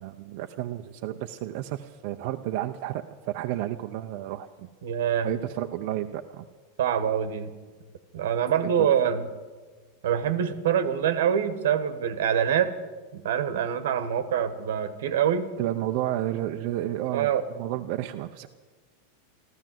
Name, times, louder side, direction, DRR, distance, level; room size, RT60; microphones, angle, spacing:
voice 1, 0.0-4.7 5.2-6.4 8.8-8.9 15.6-18.5, right 13 dB, 55° right, 5 dB, 0.6 m, -31 dB
voice 2, 4.8-5.3 6.8-7.5 8.1-9.3 10.0-12.7 13.1-15.5 17.1-17.4, right 8 dB, 80° right, 12 dB, 1.3 m, -25 dB
14.0 x 13.5 x 7.6 m, 1.4 s
supercardioid pair, 140°, 0 cm